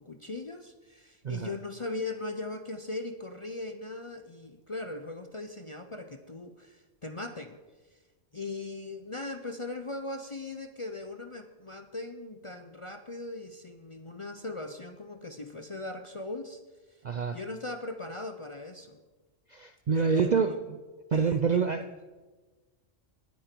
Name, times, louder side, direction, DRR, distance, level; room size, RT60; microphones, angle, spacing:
voice 1, 0.0-7.6 7.9-8.0 8.3-16.6 16.9-17.0 17.3-19.0 19.9-20.5 21.1-21.7, left 2 dB, 35° left, 6 dB, 0.5 m, -39 dB
voice 2, 17.0-17.4 19.5-20.5 21.1-21.8, right 5 dB, 55° right, 9 dB, 0.5 m, -26 dB
19.0 x 9.0 x 4.5 m, 1.3 s
omnidirectional pair, 1.3 m